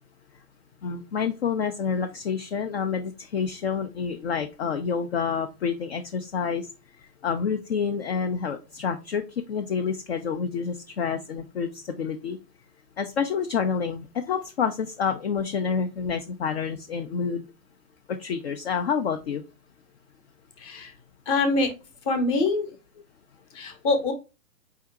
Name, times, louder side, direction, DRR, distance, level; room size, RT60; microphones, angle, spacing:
voice 1, 0.8-6.7 7.2-9.2 9.5-12.4 13.0-17.4 18.1-19.4, left 6 dB, 45° left, 6 dB, 0.4 m, -28 dB
voice 2, 20.6-20.9 21.3-21.7 22.1-22.7 23.5-24.1, left 3 dB, 25° left, 6 dB, 0.8 m, -24 dB
4.7 x 2.7 x 3.4 m, 0.29 s
hypercardioid pair, 145°, 47 cm